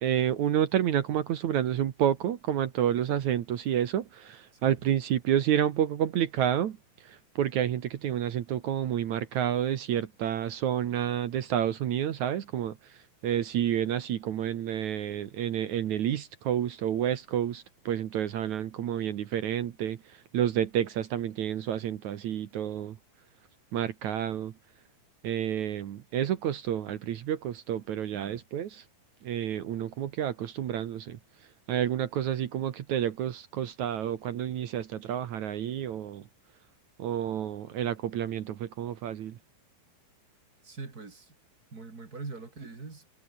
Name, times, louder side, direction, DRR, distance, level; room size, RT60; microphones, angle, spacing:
voice 1, 0.0-23.0 23.7-24.5 25.2-28.8 29.2-31.2 31.7-36.3 37.0-39.4, right 10 dB, 60° right, 2.3 m, -29 dB
voice 2, 40.6-41.4 41.7-43.1, right 4 dB, 25° right, 3.1 m, -43 dB
omnidirectional pair, 4.4 m